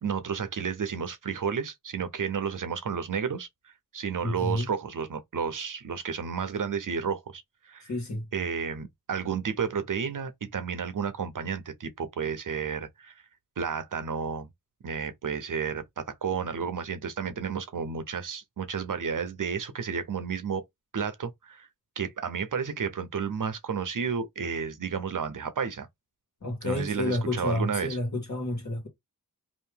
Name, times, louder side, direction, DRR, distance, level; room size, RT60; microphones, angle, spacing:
voice 1, 0.0-7.9 8.3-13.1 13.6-14.5 14.8-20.6 20.9-21.7 22.0-25.9 26.6-28.0, right 6 dB, 55° right, 0.7 m, -32 dB
voice 2, 4.2-4.7 7.9-8.2 26.4-28.9, left 1 dB, 50° left, 1.6 m, -30 dB
2.8 x 2.5 x 3.4 m
wide cardioid pair, 90°, 37 cm